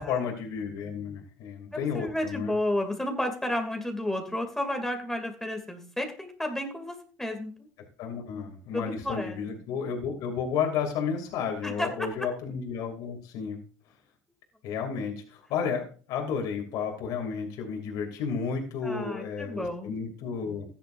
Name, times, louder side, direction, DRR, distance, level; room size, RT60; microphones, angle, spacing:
voice 1, 0.0-2.5 8.0-13.6 14.6-20.6, left 6 dB, 70° left, 1 dB, 3.0 m, -32 dB
voice 2, 1.7-7.5 8.7-9.4 11.6-11.9 18.8-20.0, left 1 dB, 5° left, 4 dB, 2.7 m, -32 dB
14.5 x 10.5 x 2.7 m, 0.39 s
supercardioid pair, 85°, 7 cm